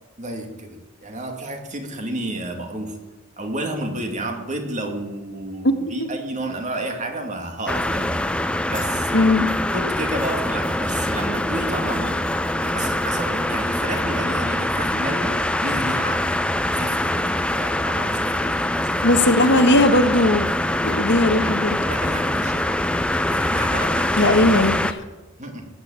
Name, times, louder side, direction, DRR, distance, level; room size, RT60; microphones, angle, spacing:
voice 1, 0.2-3.0 3.4-8.2 8.7-9.3 9.6-12.1 12.6-16.2 16.7-19.0 21.9-22.8 23.1-24.3 25.4-25.7, right 1 dB, 35° right, 4 dB, 2.3 m, -31 dB
voice 2, 5.6-6.1 9.1-9.5 19.0-20.4 20.8-21.8 24.2-25.0, left 1 dB, 55° left, 7 dB, 1.4 m, -18 dB
sound 1, 7.7-24.9, left 1 dB, 5° left, 0.6 m, -23 dB
18.5 x 9.0 x 8.7 m, 1.1 s
head